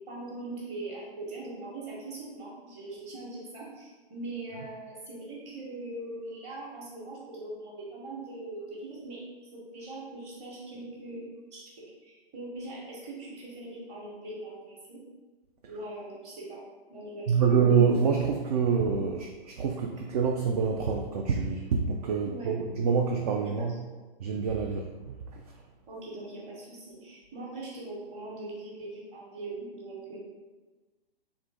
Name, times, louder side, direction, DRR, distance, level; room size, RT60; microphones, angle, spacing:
voice 1, 0.1-11.6 12.0-15.0 15.7-16.6 16.9-17.6 22.2-22.5 23.4-23.8 25.9-30.2, right 2 dB, 20° right, -4 dB, 1.1 m, -41 dB
voice 2, 17.3-23.8 24.2-24.9, right 6 dB, 40° right, 1 dB, 0.4 m, -26 dB
3.7 x 3.0 x 3.4 m, 1.3 s
figure-of-eight pair, 125°, 30 cm